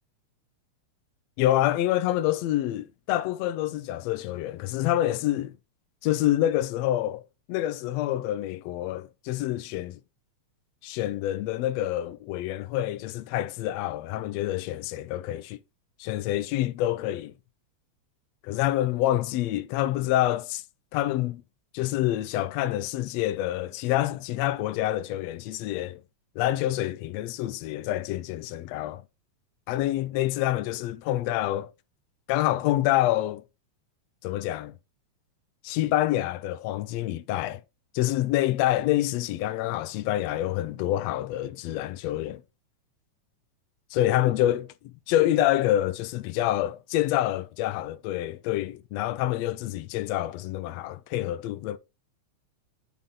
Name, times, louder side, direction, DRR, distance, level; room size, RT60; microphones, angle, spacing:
voice 1, 1.4-5.5 6.0-7.2 7.5-10.0 10.8-15.6 16.0-17.3 18.4-20.6 20.9-21.4 21.7-26.0 26.4-29.0 29.7-31.7 32.3-33.4 34.2-34.7 35.6-37.6 37.9-42.4 43.9-44.7 45.1-51.8, left 14 dB, 75° left, 1.7 m, -27 dB
8.4 x 5.6 x 3.7 m
omnidirectional pair, 3.3 m